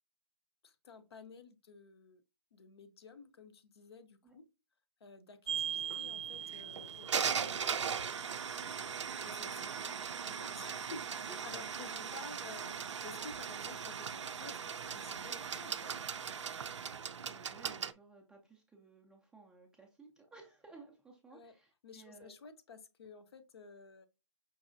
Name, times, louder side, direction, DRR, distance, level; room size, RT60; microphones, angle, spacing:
voice 1, 0.6-2.2 2.5-4.5 5.0-7.9 9.2-10.0 10.3-12.7 13.0-16.2 21.3-21.5 21.8-24.1, left 4 dB, 55° left, 0.6 m, -53 dB
sound 1, 5.5-17.9, right 7 dB, 65° right, 0.4 m, -38 dB
voice 2, 17.3-22.3, right 3 dB, 5° right, 0.4 m, -57 dB
5.3 x 2.9 x 2.5 m
figure-of-eight pair, 135°, 16 cm